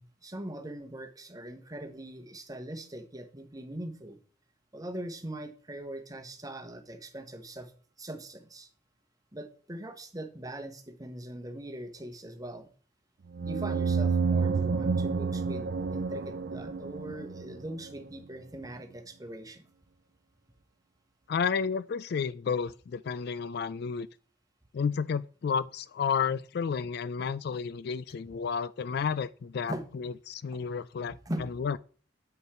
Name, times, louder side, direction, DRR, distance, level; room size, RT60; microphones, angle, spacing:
voice 1, 0.0-4.2 4.7-7.7 8.0-8.7 9.3-12.7 13.4-19.7 27.2-27.3 29.7-29.9 31.2-31.5, right 1 dB, 20° right, 1.1 m, -41 dB
sound 1, 13.3-17.9, right 5 dB, 60° right, 0.4 m, -29 dB
voice 2, 21.3-24.1 24.7-31.2 31.5-31.8, left 6 dB, 60° left, 0.3 m, -31 dB
8.0 x 5.5 x 4.3 m
head